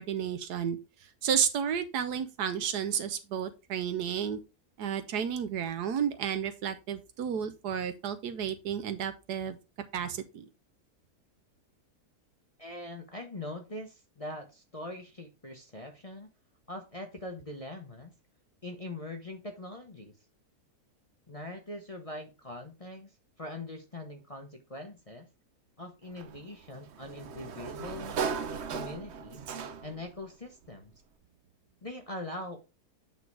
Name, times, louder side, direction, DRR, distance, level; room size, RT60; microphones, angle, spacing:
voice 1, 0.0-4.4 4.8-9.6 9.9-10.4, right 8 dB, 80° right, 1.3 m, -32 dB
voice 2, 12.6-16.3 16.7-18.1 18.6-20.1 21.3-25.3 25.8-28.2 28.6-29.4 29.8-30.9 31.8-32.7, left 1 dB, 25° left, 1.0 m, -42 dB
Sliding door, 26.2-30.1, right 6 dB, 55° right, 0.9 m, -37 dB
8.4 x 4.1 x 4.8 m
omnidirectional pair, 1.7 m